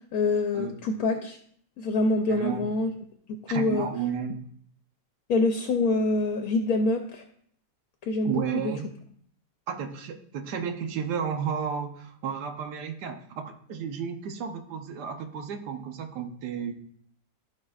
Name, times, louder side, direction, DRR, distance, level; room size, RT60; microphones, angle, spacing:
voice 1, 0.1-1.4 1.8-2.9 3.3-3.9 5.3-7.2 8.0-8.7, left 3 dB, 70° left, 5 dB, 1.1 m, -26 dB
voice 2, 2.3-2.7 3.5-4.5 8.2-8.9 9.7-16.7, right 7 dB, 80° right, 6 dB, 1.5 m, -32 dB
14.5 x 5.3 x 2.4 m, 0.64 s
omnidirectional pair, 1.7 m